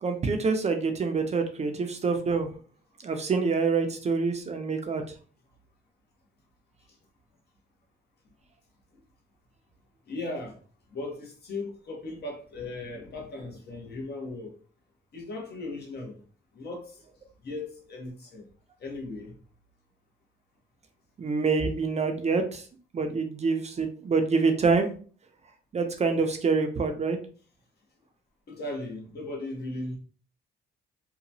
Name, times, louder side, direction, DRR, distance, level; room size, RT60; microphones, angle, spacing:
voice 1, 0.0-2.5 3.0-5.0 21.2-22.6 22.9-24.9 25.7-27.2, right 4 dB, 35° right, 0.5 m, -26 dB
voice 2, 10.1-10.6 10.9-14.6 15.1-16.2 16.5-17.0 17.4-18.5 18.8-19.3 28.5-30.0, left 2 dB, 55° left, 1.0 m, -37 dB
2.9 x 2.2 x 2.6 m
cardioid pair, 90°, 20 cm